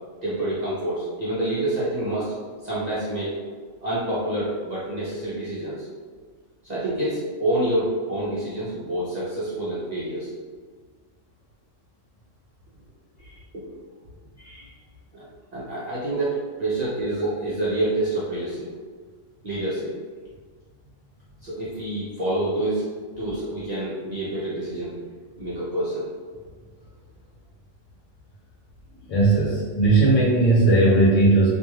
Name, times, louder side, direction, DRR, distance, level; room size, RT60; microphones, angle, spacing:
voice 1, 0.2-2.3 2.6-3.4 3.8-5.9 6.6-10.3 13.5-13.7 15.1-15.2 15.5-18.7 19.4-19.9 21.4-22.9 23.2-25.0 25.4-26.1, right 1 dB, 50° right, -9 dB, 0.5 m, -27 dB
voice 2, 29.0-31.5, right 2 dB, 75° left, -6 dB, 1.0 m, -18 dB
2.5 x 2.3 x 3.0 m, 1.6 s
omnidirectional pair, 1.3 m